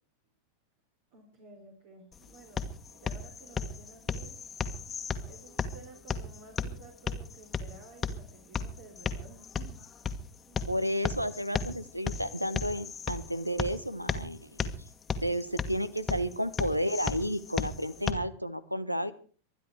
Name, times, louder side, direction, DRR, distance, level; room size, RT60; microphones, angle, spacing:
voice 1, 1.1-4.4 5.2-10.1 10.5-10.7, right 3 dB, 50° right, 3 dB, 3.8 m, -53 dB
sound 1, 2.1-18.1, left 5 dB, 20° left, 1.5 m, -36 dB
voice 2, 10.7-14.7 15.2-19.1, equal, 90° right, 18 dB, 1.2 m, -32 dB
24.0 x 10.5 x 4.7 m, 0.40 s
figure-of-eight pair, 90°, 0 cm